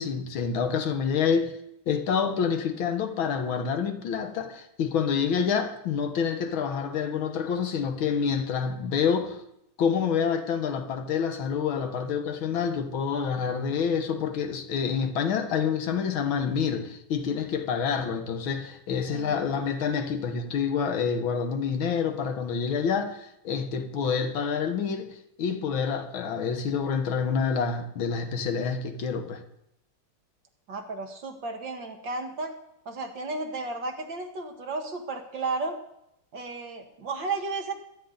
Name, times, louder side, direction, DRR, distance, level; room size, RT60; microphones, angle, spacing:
voice 1, 0.0-1.6 1.9-9.4 9.8-29.4, left 6 dB, 70° left, 1.9 m, -27 dB
voice 2, 19.1-19.5 30.7-32.5 32.9-35.8 36.3-37.7, right 3 dB, 60° right, 2.2 m, -33 dB
23.0 x 10.0 x 3.9 m
omnidirectional pair, 2.4 m